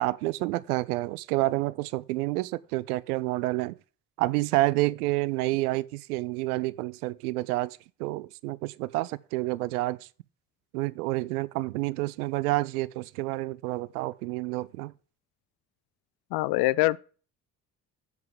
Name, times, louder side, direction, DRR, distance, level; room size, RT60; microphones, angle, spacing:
voice 1, 0.0-3.8 4.2-10.0 10.7-14.9, right 19 dB, 65° right, 0.6 m, -29 dB
voice 2, 16.3-17.0, left 19 dB, 50° left, 0.6 m, -23 dB
7.5 x 5.6 x 7.3 m
figure-of-eight pair, 50°, 49 cm